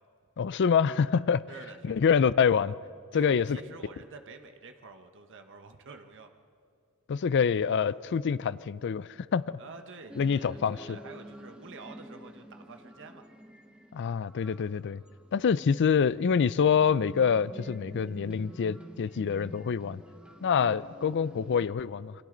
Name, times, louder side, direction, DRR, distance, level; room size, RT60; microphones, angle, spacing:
voice 1, 0.4-1.4 1.8-2.7 3.1-3.6 7.1-9.6 10.2-11.0 13.9-15.0 15.3-20.0 20.4-22.1, left 6 dB, 55° left, 0.4 m, -26 dB
voice 2, 1.5-2.1 3.1-6.3 9.6-13.2, right 4 dB, 60° right, 1.1 m, -48 dB
sound 1, 10.1-21.7, equal, 5° right, 1.0 m, -48 dB
28.5 x 24.0 x 3.9 m
head